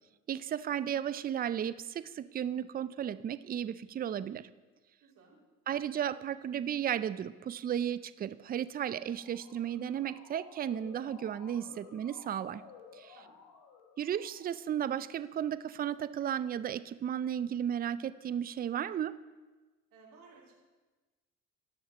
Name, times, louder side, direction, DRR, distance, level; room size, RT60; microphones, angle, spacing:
voice 1, 0.3-4.5 5.7-12.6 12.9-13.2 14.0-19.2, right 9 dB, 25° right, 15 dB, 0.4 m, -34 dB
voice 2, 5.0-5.4 13.1-13.3 19.9-20.6, right 4 dB, 65° right, -3 dB, 2.9 m, -58 dB
Motor vehicle (road) / Siren, 8.8-14.7, left 6 dB, 60° left, 1.3 m, -55 dB
18.0 x 6.4 x 2.9 m, 1.2 s
hypercardioid pair, 65°, 36 cm